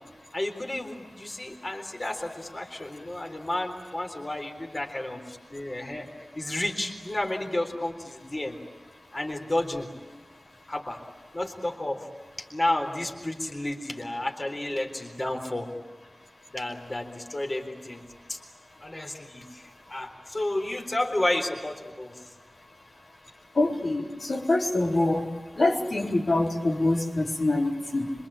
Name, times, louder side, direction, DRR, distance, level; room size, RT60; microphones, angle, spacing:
voice 1, 0.3-6.1 6.4-8.6 9.1-9.9 10.7-11.0 11.3-12.1 12.4-15.7 16.5-18.0 18.3-18.4 18.8-22.1, left 1 dB, 35° left, 3 dB, 4.0 m, -31 dB
voice 2, 23.6-25.3 25.6-28.1, left 2 dB, 65° left, -2 dB, 4.1 m, -25 dB
26.0 x 24.5 x 8.8 m, 1.3 s
wide cardioid pair, 65°, 0 cm